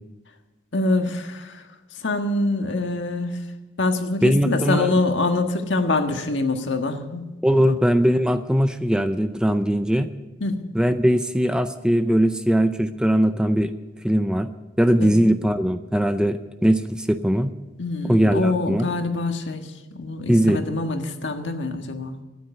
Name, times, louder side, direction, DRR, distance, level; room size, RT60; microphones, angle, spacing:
voice 1, 0.7-1.7 1.9-3.5 3.8-7.3 7.7-7.8 10.4-10.7 15.0-15.1 17.8-22.2, left 2 dB, 75° left, 5 dB, 1.6 m, -25 dB
voice 2, 4.2-4.9 7.4-10.1 10.7-13.7 14.0-14.5 14.8-17.5 18.0-18.9 20.3-20.6, equal, 5° right, 9 dB, 0.5 m, -20 dB
13.0 x 9.5 x 9.4 m, 1.1 s
head